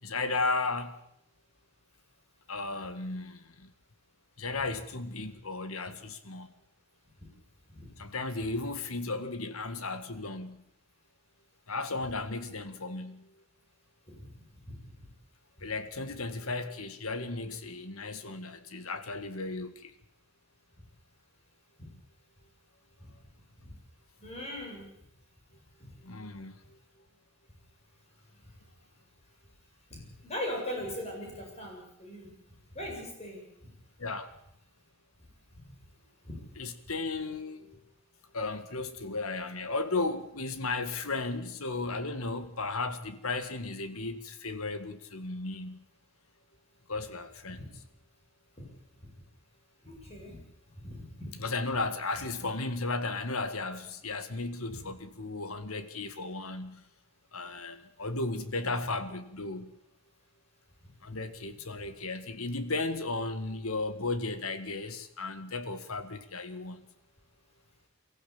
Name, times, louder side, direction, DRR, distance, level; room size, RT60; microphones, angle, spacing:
voice 1, 0.0-0.9 2.5-3.7 4.4-6.5 8.0-10.6 11.7-13.3 15.6-19.9 26.0-26.8 34.0-34.3 36.6-37.8 38.3-45.9 46.9-47.7 51.4-56.9 57.3-59.8 61.0-66.9, left 3 dB, 80° left, 1.9 m, -35 dB
voice 2, 24.2-24.9 25.8-25.9 29.9-32.3 32.7-33.4 35.5-35.7 36.2-36.4 47.6-47.7 49.8-50.4 50.8-51.3 54.7-54.8 61.1-61.2, left 1 dB, 30° left, 7.9 m, -40 dB
23.5 x 14.5 x 8.6 m
head